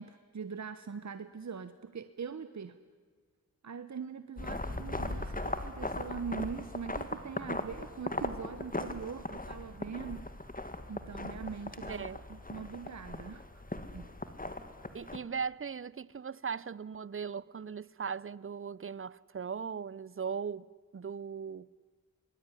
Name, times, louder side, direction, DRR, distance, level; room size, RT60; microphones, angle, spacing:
voice 1, 0.0-2.7 3.6-10.3 10.9-12.0 12.5-13.5 13.9-14.1, right 6 dB, 55° right, 1.0 m, -42 dB
sound 1, 4.4-15.2, left 2 dB, 25° left, 2.1 m, -39 dB
voice 2, 11.9-12.2 14.9-21.7, right 6 dB, 40° right, 0.7 m, -39 dB
25.0 x 20.5 x 9.9 m
cardioid pair, 45°, 33 cm